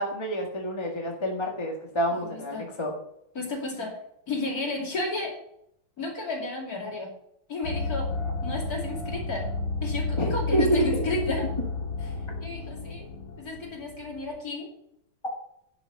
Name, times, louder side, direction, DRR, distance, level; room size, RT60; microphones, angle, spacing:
voice 1, 0.0-2.9 10.2-10.8, equal, 15° left, 0 dB, 1.6 m, -28 dB
voice 2, 2.2-2.7 3.3-4.0 4.3-5.3 6.0-7.1 7.5-8.1 8.4-9.5 9.8-11.5 12.0-12.1 12.4-13.1 13.4-14.7, left 2 dB, 40° left, 0 dB, 3.0 m, -32 dB
sound 1, 7.6-14.4, left 3 dB, 65° left, 2.6 m, -32 dB
11.0 x 6.2 x 6.5 m, 0.75 s
omnidirectional pair, 2.4 m